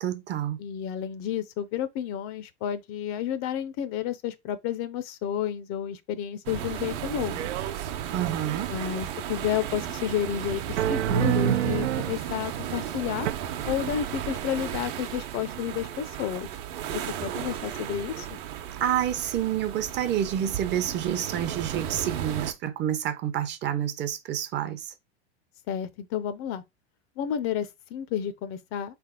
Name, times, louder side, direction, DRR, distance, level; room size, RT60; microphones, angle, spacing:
voice 1, 0.0-0.6 8.1-8.7 18.8-24.9, right 10 dB, 30° right, 0.7 m, -28 dB
voice 2, 0.6-7.5 8.7-13.3 13.6-16.5 16.9-18.4 25.7-26.6 27.2-29.0, left 9 dB, 40° left, 0.6 m, -31 dB
sound 1, 6.5-22.5, right 10 dB, 55° right, 1.0 m, -34 dB
sound 2, 7.3-7.9 8.2-9.0 10.8-12.2 13.3-13.4, right 11 dB, 85° right, 0.5 m, -27 dB
3.9 x 3.4 x 3.7 m
hypercardioid pair, 110°, 34 cm